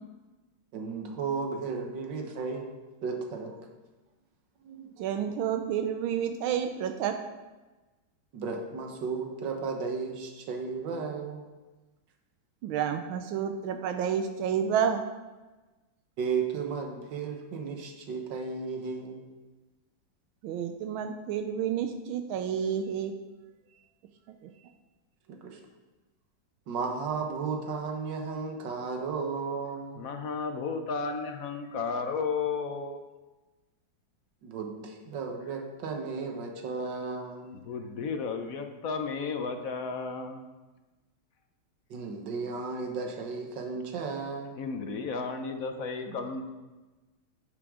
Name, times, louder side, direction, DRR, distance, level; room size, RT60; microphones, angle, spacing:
voice 1, 0.7-2.6 3.0-3.5 4.6-5.1 8.3-11.4 16.2-19.2 25.3-25.6 26.7-30.1 34.4-37.7 41.9-44.6 46.1-46.2, right 5 dB, 65° right, 3 dB, 1.8 m, -34 dB
voice 2, 5.0-7.2 12.6-15.0 20.4-23.1, right 8 dB, 85° right, 7 dB, 1.4 m, -30 dB
voice 3, 30.0-33.0 37.5-40.4 44.6-46.5, left 5 dB, 65° left, 6 dB, 0.9 m, -33 dB
9.5 x 8.6 x 3.7 m, 1.2 s
omnidirectional pair, 2.2 m